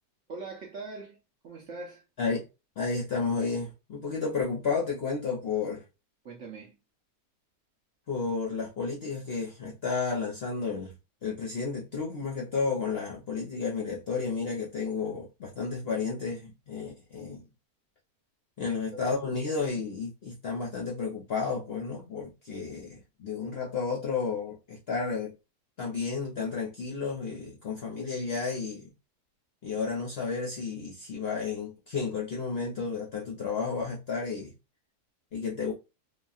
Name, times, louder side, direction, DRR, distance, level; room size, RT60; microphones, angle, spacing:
voice 1, 0.3-1.2 1.4-2.0 6.2-6.8 18.7-18.8 19.2-19.3, right 3 dB, 65° right, 0.7 m, -42 dB
voice 2, 2.8-5.8 8.1-11.0 11.2-17.4 18.6-25.4 25.8-28.9 29.6-34.5 35.3-35.7, left 4 dB, 60° left, 0.6 m, -32 dB
2.9 x 2.4 x 2.3 m
omnidirectional pair, 1.8 m